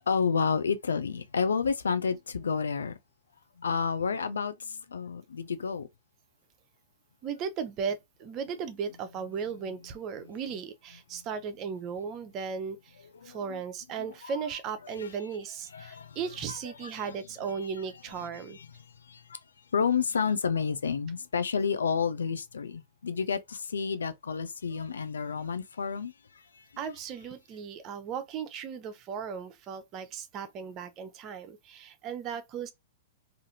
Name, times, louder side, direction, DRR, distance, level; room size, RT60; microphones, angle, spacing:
voice 1, 0.1-2.9 3.6-5.9 13.2-13.6 14.0-14.3 14.8-15.1 15.7-16.2 16.5-16.9 18.3-18.7 19.1-19.4 19.7-26.1, left 6 dB, 85° left, 0.4 m, -30 dB
voice 2, 7.2-12.9 13.2-18.6 26.8-32.7, right 6 dB, 35° right, 0.6 m, -36 dB
2.5 x 2.5 x 2.7 m
hypercardioid pair, 115°, 0 cm